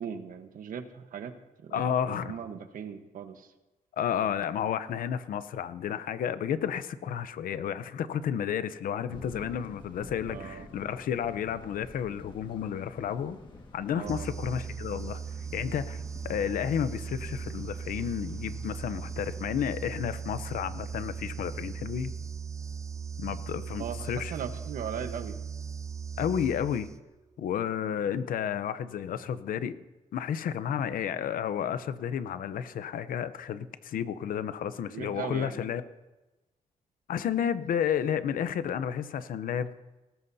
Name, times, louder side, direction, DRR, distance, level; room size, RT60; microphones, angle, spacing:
voice 1, 0.0-1.3 1.6-3.5 10.3-10.7 13.9-14.3 23.8-25.4 34.9-35.6, right 7 dB, 80° right, 7 dB, 1.2 m, -38 dB
voice 2, 1.7-2.4 3.9-13.4 13.7-15.2 15.5-22.1 23.2-24.3 26.2-26.9 27.4-29.8 30.1-35.8 37.1-39.8, left 8 dB, 90° left, 12 dB, 0.7 m, -31 dB
sound 1, 9.1-19.5, left 3 dB, 35° left, 1.8 m, -49 dB
sound 2, 14.1-27.2, right 6 dB, 20° right, 0.5 m, -38 dB
19.5 x 18.5 x 2.8 m, 1.1 s
wide cardioid pair, 155°, 14 cm